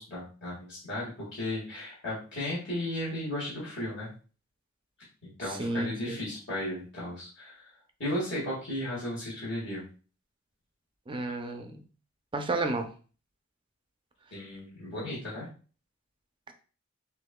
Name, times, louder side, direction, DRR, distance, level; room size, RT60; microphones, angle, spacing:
voice 1, 0.0-4.1 5.2-7.6 8.0-9.8 14.3-15.5, left 1 dB, 60° left, -7 dB, 1.7 m, -35 dB
voice 2, 5.6-6.2 11.1-11.8 12.3-12.9, right 2 dB, 25° right, 5 dB, 0.5 m, -31 dB
6.4 x 2.6 x 2.2 m, 0.38 s
head